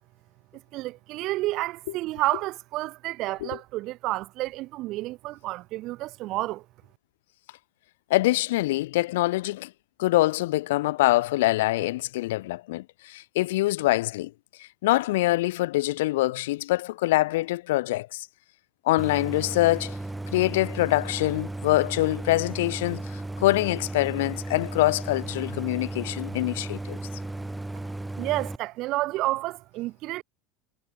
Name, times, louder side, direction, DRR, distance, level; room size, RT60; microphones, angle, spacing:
voice 1, 0.7-6.7 28.2-30.2, right 18 dB, 50° right, 2.0 m, -30 dB
voice 2, 8.1-9.7 10.0-14.3 14.8-18.3 18.9-19.9 20.3-23.0 23.4-27.0, left 18 dB, 85° left, 2.4 m, -24 dB
Idling, 19.0-28.6, right 2 dB, 5° right, 1.6 m, -35 dB
supercardioid pair, 140°, 0 cm